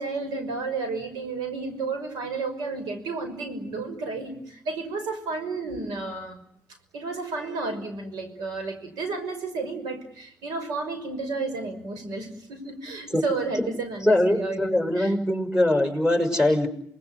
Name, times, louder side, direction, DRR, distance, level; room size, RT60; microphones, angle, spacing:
voice 1, 0.0-6.4 6.9-15.1, right 3 dB, 90° right, 8 dB, 5.9 m, -32 dB
voice 2, 14.0-16.7, left 1 dB, 10° right, 5 dB, 6.0 m, -22 dB
28.0 x 20.0 x 9.7 m, 0.71 s
cardioid pair, 80°, 7 cm